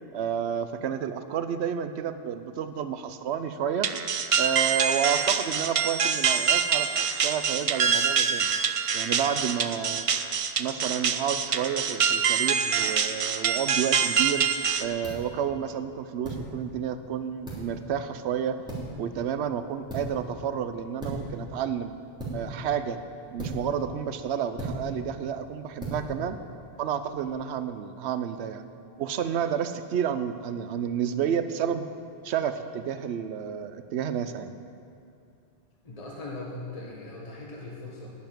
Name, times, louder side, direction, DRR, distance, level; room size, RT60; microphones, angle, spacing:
voice 1, 0.1-4.0 4.3-8.5 8.9-10.1 10.6-14.5 14.8-18.6 19.0-21.9 22.3-23.0 23.3-26.4 26.8-28.7 29.0-31.9 32.2-34.5, right 8 dB, 80° right, 10 dB, 0.9 m, -30 dB
sound 1, 3.8-14.8, right 6 dB, 50° right, 0.4 m, -25 dB
sound 2, 14.6-27.3, right 1 dB, 5° right, 3.1 m, -40 dB
voice 2, 35.8-38.1, left 2 dB, 35° left, -4 dB, 1.6 m, -39 dB
10.5 x 7.2 x 9.2 m, 2.6 s
omnidirectional pair, 1.1 m